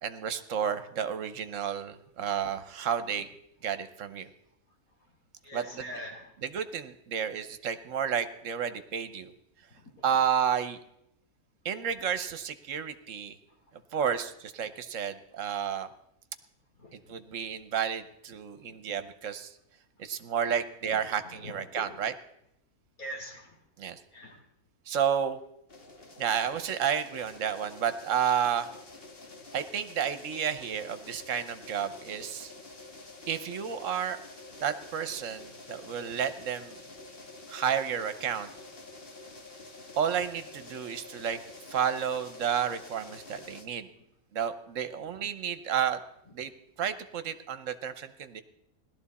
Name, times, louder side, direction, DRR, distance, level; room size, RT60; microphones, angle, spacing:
voice 1, 0.0-3.3 3.6-4.3 5.5-5.8 6.4-9.3 10.0-10.8 11.6-13.4 13.9-15.9 17.1-19.5 20.0-22.1 23.8-24.0 24.9-25.4 26.2-28.7 29.5-32.5 33.3-34.2 34.6-36.8 37.5-38.5 40.0-41.4 41.7-43.9 44.3-46.0 46.3-46.5 46.8-48.4, right 8 dB, 65° right, 11 dB, 1.1 m, -31 dB
voice 2, 5.4-6.3 9.7-10.1 16.8-17.2 21.4-21.9 23.0-23.6 24.1-24.4 29.3-29.4, equal, 70° left, 0 dB, 3.4 m, -43 dB
sound 1, 25.7-43.6, left 2 dB, 40° left, 1.5 m, -48 dB
17.5 x 12.0 x 4.2 m, 0.77 s
omnidirectional pair, 1.5 m